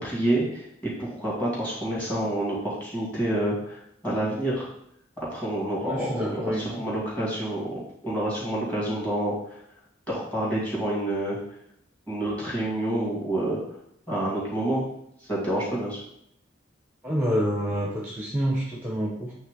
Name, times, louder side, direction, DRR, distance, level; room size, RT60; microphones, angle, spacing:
voice 1, 0.0-0.7 1.0-4.7 5.2-9.3 10.1-11.4 12.1-13.6 14.1-14.9 15.3-16.0, right 1 dB, 10° left, -6 dB, 2.4 m, -28 dB
voice 2, 5.8-6.9 17.0-19.3, equal, 10° right, -3 dB, 0.9 m, -28 dB
8.6 x 3.4 x 3.8 m, 0.73 s
head